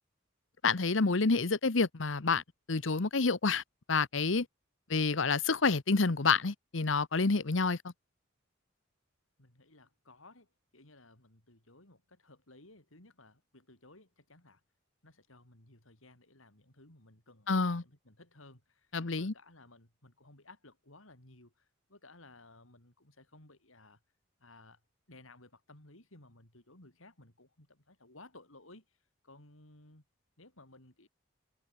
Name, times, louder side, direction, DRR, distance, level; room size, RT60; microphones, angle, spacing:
voice 1, 0.6-2.4 2.7-3.6 3.9-4.5 4.9-7.8 17.5-17.8 18.9-19.3, left 4 dB, 70° left, 1.0 m, -28 dB
voice 2, 9.4-14.6 15.0-24.0 24.4-24.8 25.1-28.8 29.2-30.0 30.4-31.1, left 2 dB, 85° left, 6.1 m, -58 dB
head